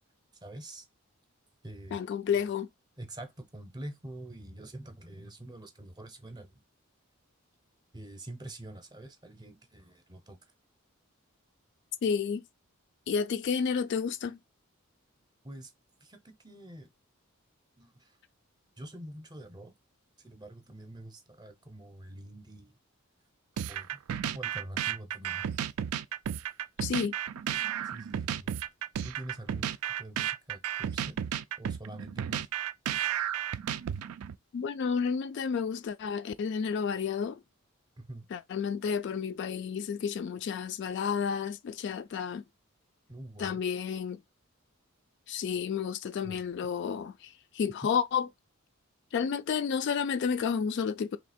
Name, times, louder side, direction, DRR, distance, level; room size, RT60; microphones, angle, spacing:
voice 1, 0.4-0.9 1.6-2.0 3.0-6.6 7.9-10.4 15.4-15.7 16.0-16.9 17.8-18.2 18.8-19.7 20.2-22.7 23.6-25.5 27.8-28.5 29.0-31.2 31.6-32.5 38.0-38.3 43.1-43.6 46.2-46.4, right 1 dB, 20° right, 0.7 m, -46 dB
voice 2, 1.9-2.7 12.0-12.5 13.1-14.4 26.8-27.1 34.5-37.4 38.3-42.4 43.4-44.2 45.3-48.3 49.1-51.2, left 6 dB, 55° left, 0.3 m, -31 dB
sound 1, 23.6-34.4, right 9 dB, 90° right, 0.4 m, -33 dB
3.1 x 2.8 x 4.2 m
head